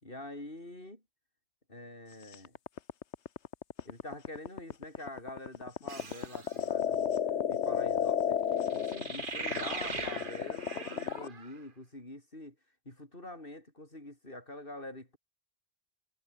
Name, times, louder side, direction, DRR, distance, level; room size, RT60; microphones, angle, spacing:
voice 1, 0.0-1.0 1.7-2.6 3.8-7.2 7.5-8.4 8.7-12.6 12.8-15.2, left 1 dB, 55° left, 6.7 m, -45 dB
sound 1, 2.3-11.3, left 9 dB, 85° left, 1.2 m, -32 dB
sound 2, 5.9-6.6 8.7-11.6, right 4 dB, 50° right, 1.7 m, -41 dB
omnidirectional pair, 1.1 m